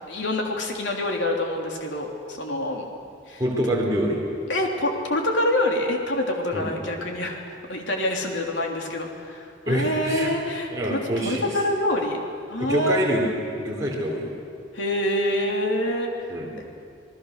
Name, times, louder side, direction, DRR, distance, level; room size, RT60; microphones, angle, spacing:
voice 1, 0.1-2.9 3.3-3.4 4.5-12.2 12.5-13.0 14.7-16.4, left 1 dB, 65° left, 1 dB, 3.3 m, -26 dB
voice 2, 3.4-4.2 6.5-6.7 9.7-10.3 10.7-11.4 12.6-13.3 13.6-14.2 16.3-16.5, equal, 15° right, -4 dB, 3.4 m, -25 dB
28.0 x 19.5 x 6.7 m, 2.6 s
head